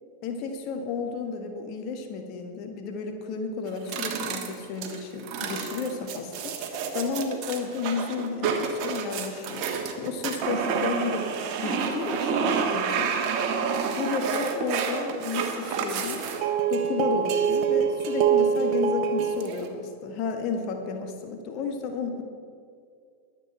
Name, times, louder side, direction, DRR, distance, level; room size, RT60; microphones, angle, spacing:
voice 1, 0.2-9.7 10.0-11.3 11.6-13.1 14.0-16.3 16.7-22.2, left 5 dB, 40° left, 5 dB, 1.5 m, -32 dB
sound 1, 3.7-19.7, right 6 dB, 40° right, 1.4 m, -27 dB
22.5 x 8.2 x 4.4 m, 2.2 s
figure-of-eight pair, 90°, 0 cm